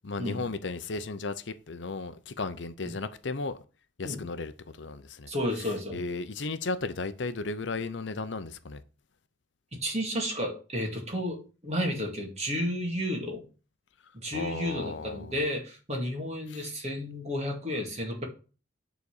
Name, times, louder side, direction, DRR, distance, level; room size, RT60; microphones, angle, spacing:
voice 1, 0.0-3.6 4.0-5.3 5.9-8.8 14.3-15.3 16.5-16.7, left 3 dB, 60° left, 0.7 m, -35 dB
voice 2, 5.3-6.0 9.7-13.4 14.1-18.2, equal, 35° right, 2.2 m, -32 dB
9.6 x 4.1 x 6.5 m
head